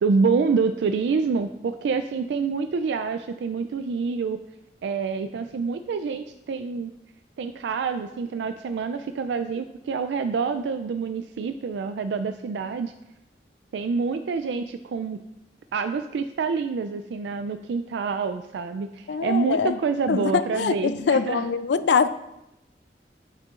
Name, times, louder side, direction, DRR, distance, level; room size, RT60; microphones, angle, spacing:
voice 1, 0.0-4.4 4.8-6.9 7.4-12.9 13.7-15.2 15.7-21.5, right 5 dB, 85° right, 8 dB, 0.3 m, -27 dB
voice 2, 19.1-19.8 20.1-22.1, left 5 dB, 80° left, 14 dB, 0.4 m, -23 dB
9.1 x 7.4 x 2.5 m, 0.90 s
head